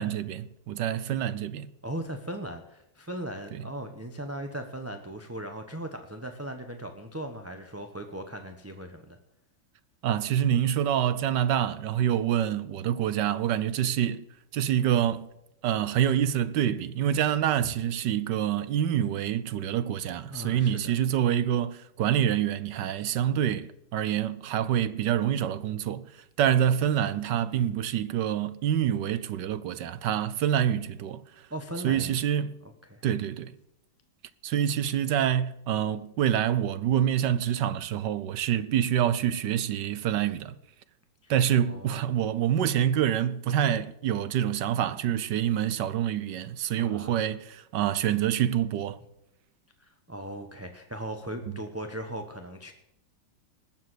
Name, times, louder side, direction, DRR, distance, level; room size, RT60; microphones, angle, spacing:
voice 1, 0.0-1.7 3.6-3.7 10.0-14.2 14.5-15.3 15.6-31.2 31.8-32.6 33.0-33.6 34.4-40.6 41.3-49.0, right 10 dB, 75° right, 1.3 m, -26 dB
voice 2, 1.8-9.2 20.3-20.9 31.5-32.2 32.8-33.0 41.2-41.3 41.7-42.1 46.8-47.3 49.8-52.7, right 1 dB, 10° right, 0.9 m, -38 dB
19.5 x 7.4 x 7.9 m
omnidirectional pair, 1.9 m